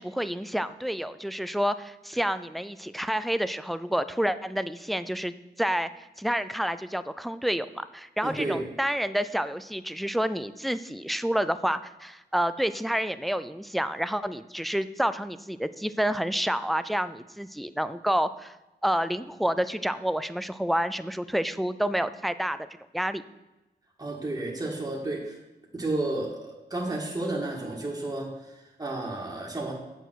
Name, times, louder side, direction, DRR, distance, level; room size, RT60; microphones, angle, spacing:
voice 1, 0.0-18.6 18.8-22.7 22.9-23.2, equal, ahead, 13 dB, 0.4 m, -29 dB
voice 2, 8.2-8.6 24.0-25.4 25.7-29.7, right 2 dB, 20° right, -3 dB, 1.9 m, -32 dB
8.1 x 6.7 x 6.3 m, 1.0 s
wide cardioid pair, 95°, 18 cm